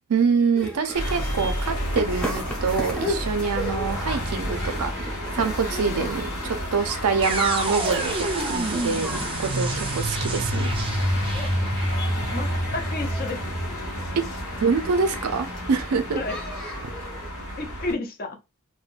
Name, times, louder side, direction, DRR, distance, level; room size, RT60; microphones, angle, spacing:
voice 1, 0.1-4.9 5.3-10.7 14.2-14.3 14.6-16.2, right 5 dB, 85° right, 0.5 m, -25 dB
sound 1, 0.5-17.3, equal, 5° left, 0.8 m, -37 dB
sound 2, 0.9-17.9, equal, 65° left, 1.2 m, -32 dB
voice 2, 5.7-6.1 11.3-11.5 12.3-13.4 16.1-16.4 17.6-18.4, left 2 dB, 40° left, 0.5 m, -32 dB
sound 3, 7.2-15.2, right 1 dB, 25° right, 0.4 m, -28 dB
3.5 x 2.1 x 2.4 m
head